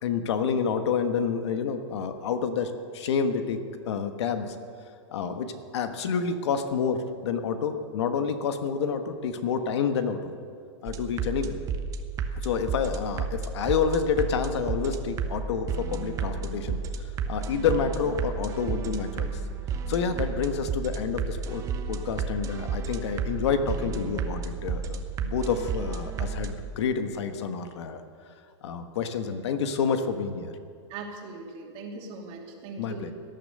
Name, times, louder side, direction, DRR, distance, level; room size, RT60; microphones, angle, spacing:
voice 1, 0.0-4.5 5.1-10.2 10.8-11.5 12.4-16.8 17.3-19.3 19.9-21.6 21.9-28.0 28.6-30.5 32.8-33.1, left 6 dB, 70° left, 8 dB, 1.4 m, -28 dB
sound 1, 10.9-26.5, right 5 dB, 20° right, 1.0 m, -32 dB
voice 2, 30.9-33.1, right 3 dB, 35° right, 1 dB, 2.6 m, -40 dB
18.0 x 10.5 x 6.7 m, 2.3 s
hypercardioid pair, 145°, 15 cm